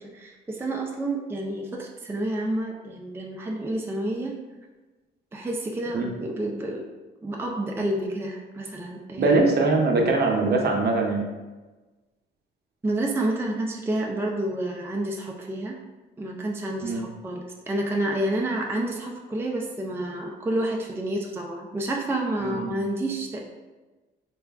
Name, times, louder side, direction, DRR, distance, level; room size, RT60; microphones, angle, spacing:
voice 1, 0.1-4.4 5.3-6.9 7.2-9.4 12.8-15.8 16.2-23.4, right 1 dB, 10° right, -1 dB, 0.4 m, -29 dB
voice 2, 9.2-11.3 16.8-17.1 22.4-22.7, right 3 dB, 55° right, 1 dB, 0.7 m, -22 dB
3.3 x 2.3 x 3.5 m, 1.2 s
cardioid pair, 90°, 20 cm